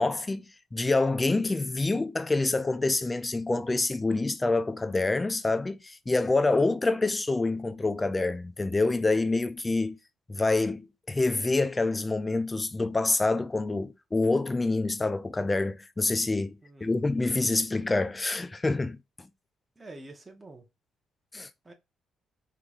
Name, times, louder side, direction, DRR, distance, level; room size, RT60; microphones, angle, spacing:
voice 1, 0.0-10.0 10.3-19.3 21.3-21.5, left 3 dB, 20° left, 0.4 m, -27 dB
voice 2, 16.6-17.1 19.8-20.7 21.6-21.7, right 2 dB, 20° right, 0.9 m, -47 dB
3.8 x 3.1 x 2.3 m
cardioid pair, 90°, 0 cm